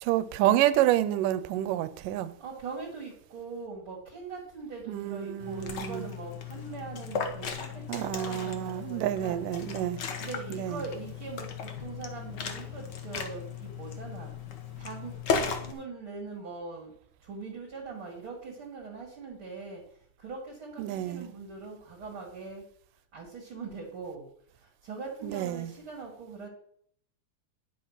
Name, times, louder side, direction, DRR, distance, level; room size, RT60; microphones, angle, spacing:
voice 1, 0.0-2.3 4.9-6.1 7.9-10.0 10.5-10.8 20.8-21.2 25.2-25.7, right 13 dB, 90° right, 2.3 m, -28 dB
voice 2, 2.4-9.4 10.2-14.3 14.8-15.1 15.4-16.9 17.2-19.8 20.2-22.6 23.1-24.3 24.8-26.5, right 4 dB, 45° right, 2.5 m, -41 dB
Liquid, 5.4-15.7, left 6 dB, 75° left, 0.9 m, -36 dB
10.0 x 7.1 x 5.7 m
omnidirectional pair, 3.7 m